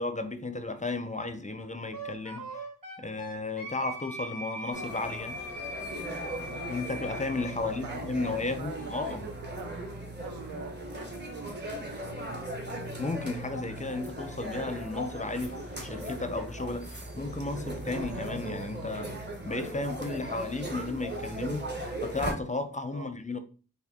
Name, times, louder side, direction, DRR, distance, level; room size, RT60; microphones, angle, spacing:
voice 1, 0.0-2.5 3.0-5.4 6.7-9.3 13.0-19.1 19.5-21.7 22.0-23.4, left 3 dB, 20° left, 0.4 m, -34 dB
Wind instrument woodwind instrument, 1.9-7.6, equal, 60° right, 1.7 m, -41 dB
sound 1, 4.7-22.3, right 1 dB, 30° right, 0.8 m, -38 dB
voice 2, 7.6-9.7 10.2-12.4 22.9-23.1, right 6 dB, 80° right, 0.5 m, -44 dB
3.5 x 2.3 x 3.5 m
cardioid pair, 45°, 37 cm